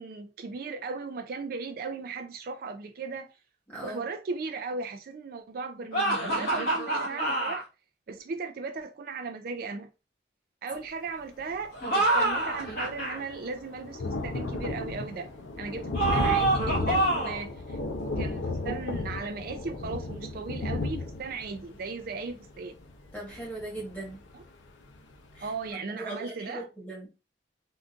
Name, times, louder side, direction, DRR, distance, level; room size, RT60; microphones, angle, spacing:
voice 1, 0.0-3.3 3.8-7.7 8.1-9.9 10.6-15.3 15.6-22.8 24.3-24.4 25.4-26.7, right 4 dB, 50° right, 0.3 m, -37 dB
voice 2, 3.7-4.0 23.1-24.2 25.3-27.1, right 1 dB, 10° left, 1.3 m, -40 dB
sound 1, 5.9-7.6 11.7-13.2 15.9-17.4, right 2 dB, 55° left, 1.4 m, -26 dB
Thunder, 11.5-11.6 11.8-24.5 24.9-25.0 25.4-25.5, left 2 dB, 85° left, 0.6 m, -34 dB
3.7 x 2.5 x 2.4 m
head